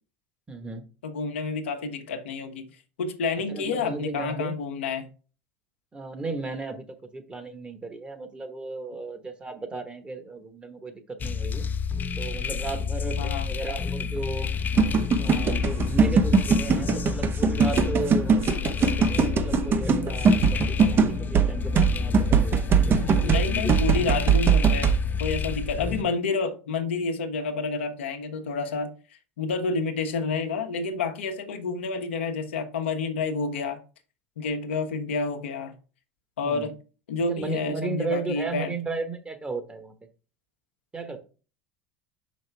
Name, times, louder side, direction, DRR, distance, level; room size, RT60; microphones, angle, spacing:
voice 1, 0.5-0.9 3.5-4.5 5.9-11.6 12.2-14.5 14.9-23.7 36.4-36.7 37.3-40.0 40.9-41.2, right 3 dB, 20° right, 1.2 m, -35 dB
voice 2, 1.0-2.7 3.0-5.1 13.2-13.5 23.0-28.9 29.4-33.8 34.4-35.7 36.4-36.7 37.1-38.7, left 4 dB, 80° left, 0.9 m, -29 dB
sound 1, 11.2-26.0, left 6 dB, 30° left, 0.6 m, -29 dB
sound 2, 14.8-25.0, right 6 dB, 35° right, 0.7 m, -21 dB
5.5 x 5.1 x 3.4 m
hypercardioid pair, 80°, 6 cm